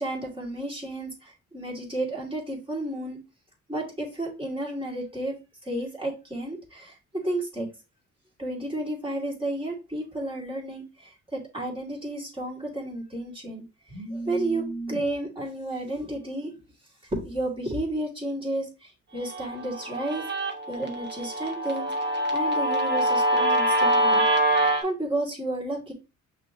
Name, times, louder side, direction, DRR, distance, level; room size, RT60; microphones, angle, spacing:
voice 1, 0.0-3.2 3.7-7.7 8.4-16.5 17.1-20.2 20.7-21.9 22.3-24.2 24.8-25.9, right 1 dB, 15° right, -3 dB, 2.4 m, -32 dB
Guitar, 19.3-24.8, right 1 dB, 35° right, 1.2 m, -24 dB
5.8 x 3.2 x 2.8 m, 0.28 s
cardioid pair, 90°, 30 cm